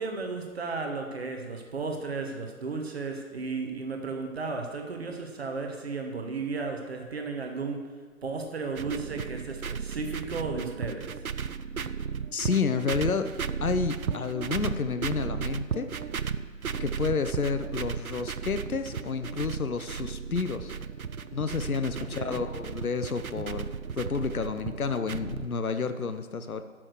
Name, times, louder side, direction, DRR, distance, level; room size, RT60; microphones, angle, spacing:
voice 1, 0.0-7.8 8.2-11.1 22.0-22.4, right 4 dB, 45° right, 3 dB, 1.2 m, -34 dB
sound 1, 8.8-25.5, right 6 dB, 85° right, 0.7 m, -35 dB
voice 2, 12.3-13.3 13.6-15.9 16.8-20.7 21.3-26.6, left 5 dB, 85° left, 9 dB, 0.9 m, -30 dB
10.5 x 6.2 x 6.4 m, 1.5 s
figure-of-eight pair, 150°, 42 cm